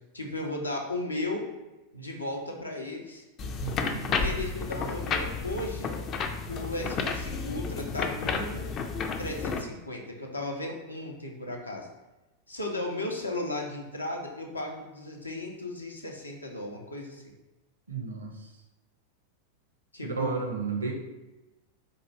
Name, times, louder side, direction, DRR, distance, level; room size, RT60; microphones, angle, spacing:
voice 1, 0.1-1.5 1.9-3.2 4.2-6.0 6.5-8.7 9.2-11.9 12.5-17.3 19.9-20.4, left 2 dB, 80° left, 1 dB, 0.6 m, -35 dB
sound 1, 3.4-9.6, left 4 dB, 30° left, 0.3 m, -31 dB
voice 2, 3.6-4.2 17.9-18.5 20.0-20.9, right 5 dB, 75° right, 2 dB, 0.6 m, -33 dB
4.4 x 2.5 x 3.2 m, 1.1 s
figure-of-eight pair, 90°, 0 cm